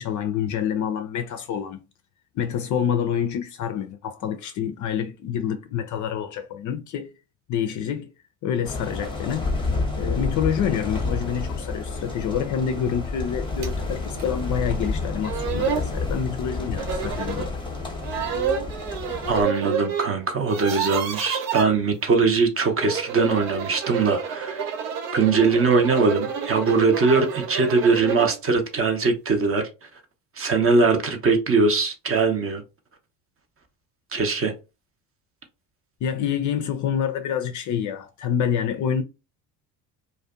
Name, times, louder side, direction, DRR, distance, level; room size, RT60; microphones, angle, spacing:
voice 1, 0.0-1.8 2.3-7.1 7.5-8.1 8.4-9.5 10.0-17.5 36.0-39.0, left 8 dB, 40° left, 0.4 m, -27 dB
sound 1, 8.6-19.4, left 3 dB, 10° left, 0.7 m, -29 dB
sound 2, 13.6-13.7 14.2-14.3 14.9-15.0 15.2-15.9 16.8-17.5 18.0-20.1 20.4-21.7 22.7-28.4, right 7 dB, 75° right, 0.7 m, -29 dB
voice 2, 19.3-24.7 25.1-29.6 30.4-32.6 34.1-34.5, right 4 dB, 30° right, 0.6 m, -21 dB
2.4 x 2.2 x 2.4 m
hypercardioid pair, 65°, 49 cm